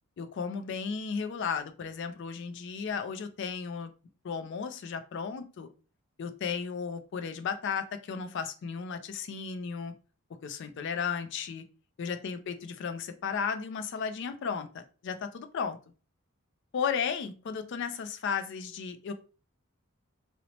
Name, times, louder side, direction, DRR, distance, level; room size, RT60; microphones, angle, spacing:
voice 1, 0.2-3.9 4.2-5.7 6.2-9.9 10.4-11.6 12.0-15.8 16.7-19.1, left 6 dB, 50° left, 9 dB, 0.3 m, -34 dB
2.8 x 2.0 x 2.9 m, 0.36 s
head